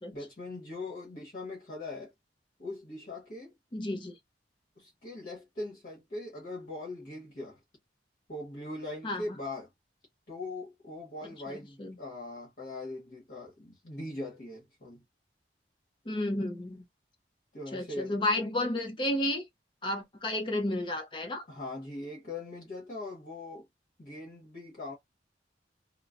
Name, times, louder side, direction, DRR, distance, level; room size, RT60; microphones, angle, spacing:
voice 1, 0.1-2.1 2.6-3.5 4.8-7.6 8.3-9.7 10.3-15.0 17.5-18.2 21.5-23.7 24.0-25.0, left 2 dB, 50° left, 1.1 m, -41 dB
voice 2, 3.7-4.2 9.0-9.2 11.5-12.0 16.1-16.8 17.7-19.4 19.8-21.5, left 1 dB, 30° left, 0.6 m, -32 dB
3.0 x 2.0 x 2.5 m
head